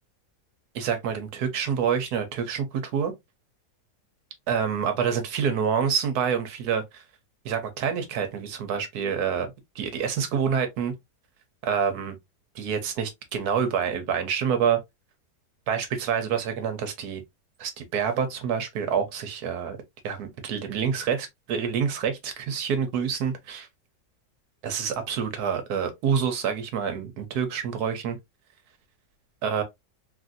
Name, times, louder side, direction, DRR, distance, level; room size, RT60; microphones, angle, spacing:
voice 1, 0.7-3.1 4.5-7.0 7.4-9.5 9.8-10.9 11.6-12.2 12.5-14.8 15.7-17.2 17.6-19.8 20.0-23.7 24.6-28.2 29.4-29.6, right 7 dB, 70° right, 1.2 m, -27 dB
3.3 x 2.5 x 2.5 m
omnidirectional pair, 1.8 m